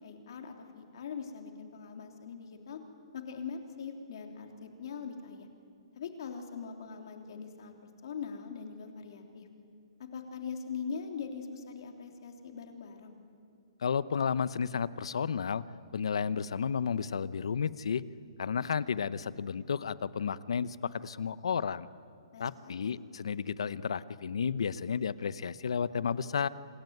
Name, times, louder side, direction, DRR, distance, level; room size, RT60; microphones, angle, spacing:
voice 1, 0.0-2.8 3.1-5.5 5.9-7.7 8.0-9.5 10.0-13.2 22.3-23.0, left 6 dB, 50° left, 4 dB, 3.4 m, -42 dB
voice 2, 13.8-15.6 15.9-18.0 18.4-21.9 22.4-26.5, left 6 dB, 70° left, 17 dB, 0.9 m, -32 dB
26.5 x 21.5 x 9.5 m, 2.3 s
hypercardioid pair, 170°, 3 cm